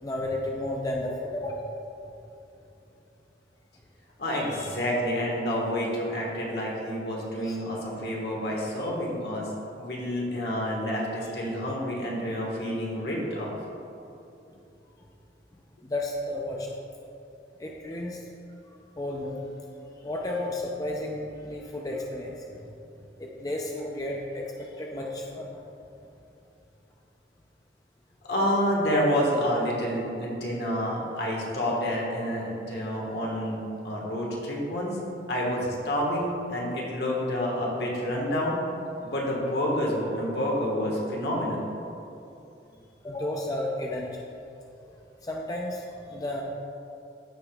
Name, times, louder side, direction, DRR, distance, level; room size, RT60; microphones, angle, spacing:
voice 1, 0.0-1.7 4.3-4.7 7.4-7.6 8.8-8.9 15.8-16.7 17.6-18.2 19.0-19.4 20.0-22.7 23.2-25.6 35.6-35.7 43.0-44.3 45.2-46.4, left 1 dB, 20° left, -2 dB, 0.5 m, -33 dB
voice 2, 4.2-9.5 9.8-13.5 28.3-33.6 33.8-35.0 35.3-38.6 39.0-41.6, equal, 70° left, -3 dB, 1.5 m, -28 dB
14.5 x 5.0 x 2.4 m, 2.8 s
head